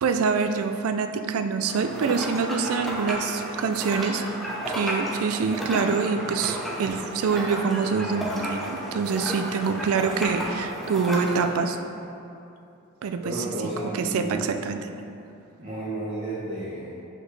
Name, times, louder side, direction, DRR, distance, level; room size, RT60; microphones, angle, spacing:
voice 1, 0.0-4.2 4.7-11.8 13.0-13.4 13.9-14.8, right 5 dB, 70° right, 8 dB, 0.4 m, -25 dB
sound 1, 1.7-11.6, equal, ahead, 0.6 m, -32 dB
voice 2, 13.2-14.5 15.6-16.9, right 1 dB, 30° right, -9 dB, 0.9 m, -32 dB
6.0 x 5.0 x 3.2 m, 2.7 s
head